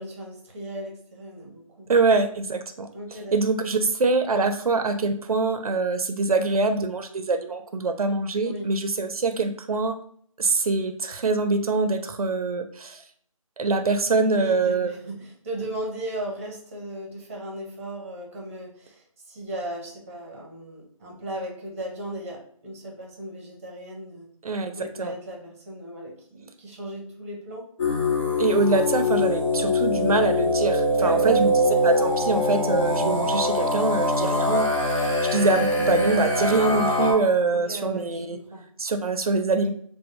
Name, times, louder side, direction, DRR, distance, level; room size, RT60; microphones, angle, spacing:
voice 1, 0.0-1.9 2.9-3.3 8.4-8.7 14.3-24.3 24.7-27.6 30.9-31.5 34.1-34.4 37.5-38.7, right 1 dB, 25° right, -1 dB, 0.7 m, -36 dB
voice 2, 1.9-2.9 3.3-10.0 10.4-13.0 13.6-14.9 24.4-25.1 28.4-34.6 34.9-38.4 38.8-39.7, right 3 dB, 85° right, 7 dB, 0.4 m, -24 dB
sound 1, 27.8-37.1, left 1 dB, 55° left, 0.8 m, -23 dB
2.5 x 2.0 x 2.9 m, 0.62 s
figure-of-eight pair, 160°, 18 cm